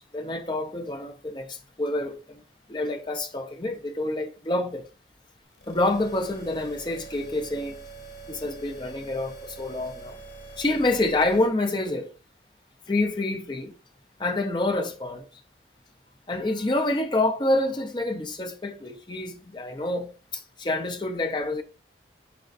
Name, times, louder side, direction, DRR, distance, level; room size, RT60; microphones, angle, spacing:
voice 1, 0.1-2.4 2.7-4.9 5.7-7.8 8.3-10.2 10.6-12.1 12.9-13.7 14.2-15.3 16.3-21.6, left 2 dB, 25° left, 0.7 m, -27 dB
sound 1, 5.5-11.5, right 4 dB, 85° left, 2.3 m, -44 dB
10.0 x 3.8 x 2.6 m
head